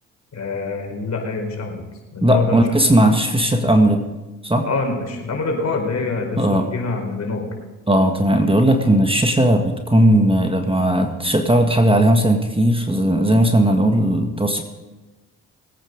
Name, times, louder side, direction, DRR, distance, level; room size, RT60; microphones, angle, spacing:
voice 1, 0.3-1.8 2.1-2.7 4.6-7.5, left 3 dB, 45° left, 2 dB, 4.4 m, -25 dB
voice 2, 2.2-4.0 4.4-4.7 6.4-6.7 7.9-14.6, right 1 dB, 15° right, 5 dB, 1.6 m, -17 dB
20.0 x 9.0 x 5.3 m, 1.1 s
hypercardioid pair, 55°, 37 cm